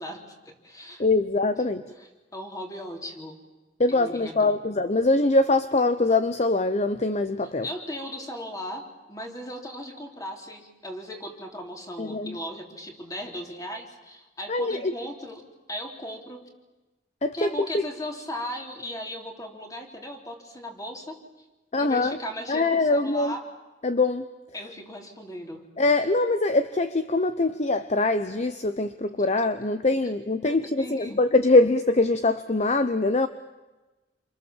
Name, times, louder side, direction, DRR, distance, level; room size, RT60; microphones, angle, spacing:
voice 1, 0.0-1.0 1.6-3.4 3.9-4.6 7.4-15.4 15.7-16.5 17.3-21.5 21.8-23.5 24.5-25.7 26.0-26.1 29.7-30.1 30.4-31.2, equal, 20° left, 2 dB, 3.6 m, -37 dB
voice 2, 1.0-1.8 3.8-7.7 12.0-12.3 14.5-14.9 17.2-17.5 21.7-22.2 22.5-23.3 23.8-24.2 25.8-33.3, left 2 dB, 40° left, 11 dB, 0.8 m, -23 dB
28.5 x 26.5 x 7.4 m, 1.1 s
head